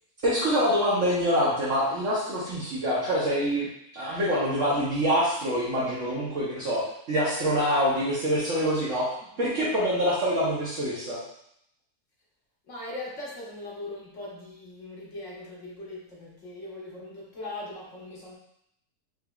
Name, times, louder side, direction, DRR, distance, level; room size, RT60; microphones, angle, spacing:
voice 1, 0.2-3.7 3.9-6.8 7.1-9.0 9.4-11.2, equal, 55° right, -9 dB, 1.2 m, -25 dB
voice 2, 12.7-16.0 16.4-18.4, left 2 dB, 55° left, -4 dB, 1.3 m, -39 dB
4.9 x 3.1 x 2.3 m, 0.75 s
omnidirectional pair, 1.6 m